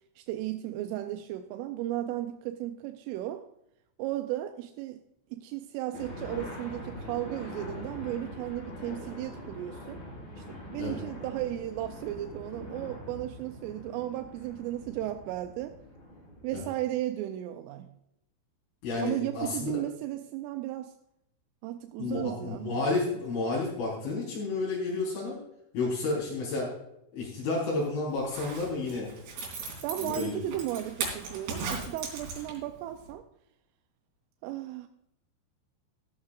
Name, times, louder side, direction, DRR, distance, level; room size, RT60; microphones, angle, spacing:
voice 1, 0.2-3.5 4.0-5.0 5.3-10.0 10.4-15.8 16.4-17.9 19.0-20.9 21.6-22.8 29.6-33.3 34.4-34.9, right 14 dB, 85° right, 6 dB, 3.1 m, -35 dB
sound 1, 5.9-16.7, left 1 dB, 25° left, 4.5 m, -43 dB
voice 2, 18.8-19.8 22.0-25.4 25.7-26.7 27.1-29.1 30.0-30.4, left 3 dB, 70° left, -6 dB, 6.2 m, -31 dB
Zipper (clothing), 28.2-32.8 33.1-33.2, right 4 dB, 60° right, 4.8 m, -37 dB
13.5 x 13.0 x 2.5 m, 0.81 s
omnidirectional pair, 5.7 m